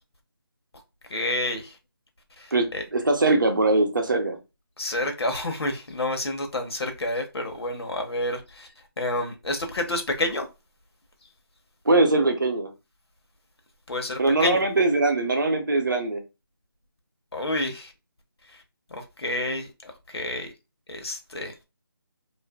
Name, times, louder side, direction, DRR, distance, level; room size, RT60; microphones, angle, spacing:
voice 1, 1.1-1.7 2.4-2.8 4.8-8.7 9.0-10.5 13.9-14.6 17.3-17.9 18.9-20.5 20.9-21.5, left 1 dB, 80° left, 0.8 m, -29 dB
voice 2, 2.5-4.4 11.9-12.7 14.2-16.2, right 2 dB, 55° right, 0.6 m, -22 dB
2.5 x 2.4 x 2.2 m
figure-of-eight pair, 180°, 13 cm